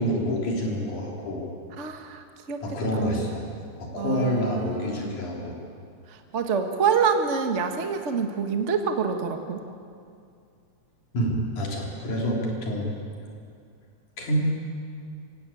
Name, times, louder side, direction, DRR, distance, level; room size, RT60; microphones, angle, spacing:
voice 1, 0.0-1.5 2.6-3.4 3.8-5.6 11.1-12.9 14.2-14.4, equal, 75° left, -2 dB, 5.0 m, -27 dB
voice 2, 1.8-2.6 2.9-3.3 4.0-5.2 6.1-9.6, right 6 dB, 45° right, 5 dB, 0.9 m, -27 dB
24.5 x 17.0 x 8.6 m, 2.4 s
omnidirectional pair, 3.5 m